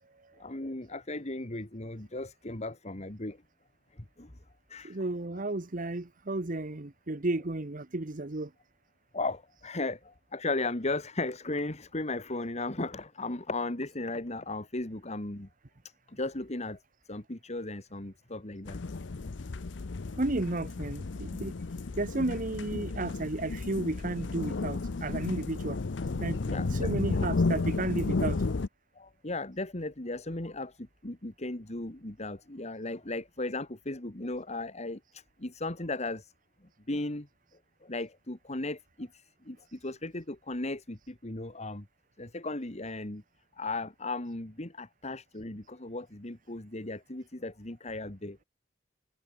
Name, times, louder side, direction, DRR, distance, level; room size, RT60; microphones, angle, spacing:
voice 1, 0.4-3.4 4.2-4.3 4.7-5.0 9.1-15.5 16.1-16.8 17.1-18.8 26.5-26.9 29.0-36.3 36.9-37.3 37.8-41.9 42.2-43.2 43.6-48.4, left 2 dB, 40° left, 2.2 m, -36 dB
voice 2, 4.8-8.5 20.2-21.5 22.0-25.8 26.2-28.4, right 2 dB, 50° right, 1.2 m, -33 dB
sound 1, 18.7-28.7, left 3 dB, 75° left, 0.7 m, -33 dB
head